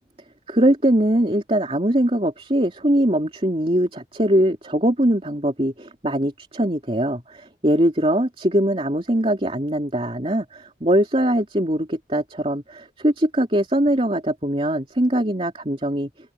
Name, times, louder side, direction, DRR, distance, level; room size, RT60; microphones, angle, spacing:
voice 1, 0.5-16.1, right 1 dB, 30° right, 3.2 m, -21 dB
open air
head